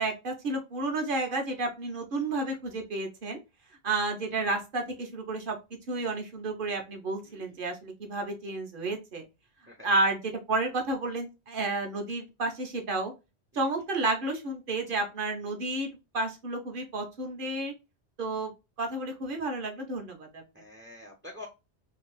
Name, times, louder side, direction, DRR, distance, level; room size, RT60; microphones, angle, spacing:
voice 1, 0.0-3.4 3.8-5.6 5.9-9.2 9.8-13.1 13.5-17.7 18.2-18.5 18.8-20.4, right 2 dB, 55° right, 3 dB, 1.0 m, -31 dB
voice 2, 7.2-7.6 9.7-9.9 20.5-21.5, left 2 dB, 15° right, 2 dB, 0.5 m, -47 dB
2.9 x 2.9 x 3.1 m, 0.26 s
omnidirectional pair, 1.1 m